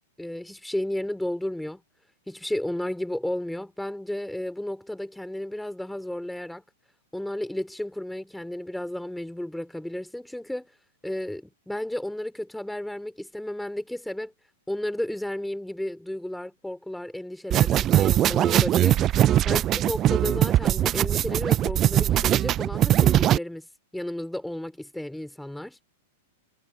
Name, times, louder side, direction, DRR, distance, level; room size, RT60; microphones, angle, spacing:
voice 1, 0.2-1.8 2.3-6.6 7.1-10.7 11.0-14.3 14.7-19.0 19.4-23.7 23.9-25.8, left 1 dB, 5° left, 4.9 m, -33 dB
sound 1, 17.5-23.4, right 12 dB, 30° right, 0.5 m, -21 dB
figure-of-eight pair, 100°, 0 cm